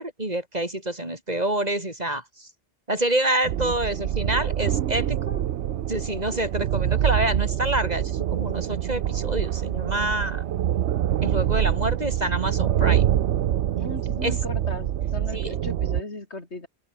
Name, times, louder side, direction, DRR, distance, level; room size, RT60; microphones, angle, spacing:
voice 1, 0.0-2.5 2.9-5.4 5.9-10.4 11.2-13.1 14.2-14.4 15.3-15.6, right 1 dB, 40° right, 4.4 m, -27 dB
sound 1, 3.4-16.0, right 11 dB, 90° right, 1.0 m, -25 dB
voice 2, 13.7-16.7, left 2 dB, 90° left, 4.5 m, -37 dB
open air
omnidirectional pair, 1.1 m